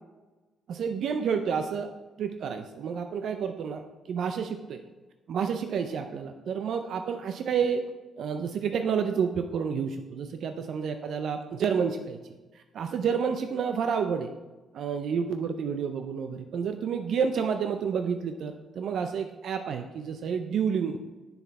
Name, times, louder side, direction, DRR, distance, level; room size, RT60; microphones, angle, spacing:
voice 1, 0.7-1.9 2.2-4.8 5.3-7.8 8.2-12.2 12.5-14.3 14.7-21.0, right 6 dB, 65° right, 7 dB, 0.5 m, -29 dB
7.1 x 6.7 x 4.2 m, 1.2 s
cardioid pair, 90°, 0 cm